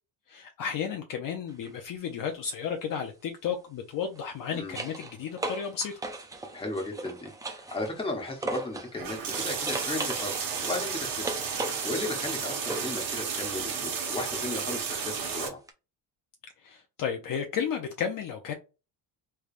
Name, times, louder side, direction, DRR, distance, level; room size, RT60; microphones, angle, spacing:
voice 1, 0.3-5.9 16.6-18.5, left 7 dB, 45° left, 0.6 m, -33 dB
sound 1, 1.5-1.7 4.0-9.0 9.3-13.0 15.7-15.8, right 2 dB, 10° right, 0.3 m, -38 dB
voice 2, 6.5-15.6, left 2 dB, 10° left, 1.0 m, -35 dB
sound 2, 8.9-15.5, right 6 dB, 50° right, 1.3 m, -33 dB
3.3 x 3.3 x 2.4 m
cardioid pair, 135°, 45 cm